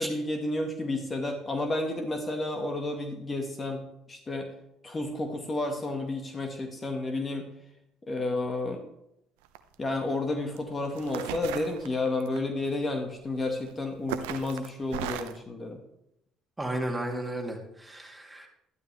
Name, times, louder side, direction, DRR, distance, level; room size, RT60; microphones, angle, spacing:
voice 1, 0.0-4.5 4.8-7.5 8.1-8.8 9.8-15.8, left 2 dB, 30° left, 4 dB, 1.9 m, -31 dB
sound 1, 9.5-9.8 10.6-10.7 11.0-12.4 13.5-13.7 14.1-15.4, right 11 dB, 85° right, 0.7 m, -36 dB
voice 2, 16.6-18.5, right 1 dB, 10° right, 0 dB, 2.9 m, -33 dB
12.5 x 12.0 x 3.5 m, 0.81 s
hypercardioid pair, 60°, 0 cm